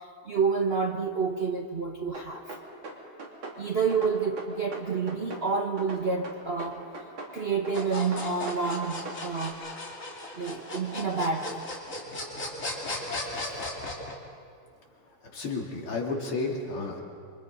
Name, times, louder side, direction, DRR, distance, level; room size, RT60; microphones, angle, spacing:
voice 1, 0.0-2.6 3.6-6.9 7.3-9.6 10.3-11.6, right 5 dB, 40° right, 2 dB, 0.9 m, -29 dB
sound 1, 2.1-3.6 3.9-5.5 5.8-7.4 7.7-9.2, right 2 dB, 65° right, 3.5 m, -40 dB
sound 2, 7.7-14.1, left 2 dB, 35° left, 2.9 m, -36 dB
voice 2, 15.3-17.0, left 3 dB, 75° left, 0 dB, 3.6 m, -32 dB
28.0 x 24.5 x 5.3 m, 2.2 s
omnidirectional pair, 2.4 m